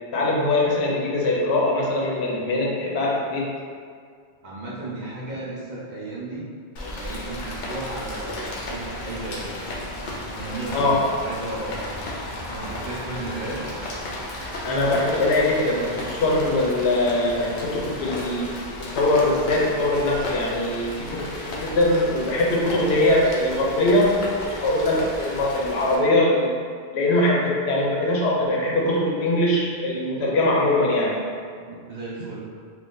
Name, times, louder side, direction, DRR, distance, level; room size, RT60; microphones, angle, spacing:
voice 1, 0.0-3.5 10.7-11.0 14.6-26.5 26.9-31.2, left 1 dB, 85° left, -3 dB, 0.9 m, -22 dB
voice 2, 4.4-6.5 6.8-9.6 10.3-11.8 12.4-13.7 31.5-32.5, right 2 dB, 50° right, -6 dB, 0.7 m, -34 dB
Rain, 6.8-26.0, left 1 dB, 55° left, 0.6 m, -34 dB
2.6 x 2.5 x 3.6 m, 2.1 s
omnidirectional pair, 1.1 m